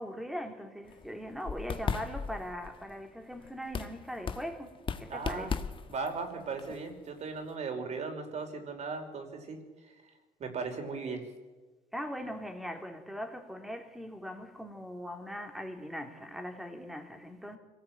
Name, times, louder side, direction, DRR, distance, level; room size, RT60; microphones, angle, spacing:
voice 1, 0.0-5.6 11.9-17.6, equal, ahead, 3.5 m, -40 dB
sound 1, 0.9-7.5, left 5 dB, 35° left, 1.5 m, -38 dB
voice 2, 5.1-5.5 5.9-9.9 10.4-11.3, right 4 dB, 50° right, 5.3 m, -37 dB
25.5 x 18.0 x 9.0 m
cardioid pair, 110°, 15 cm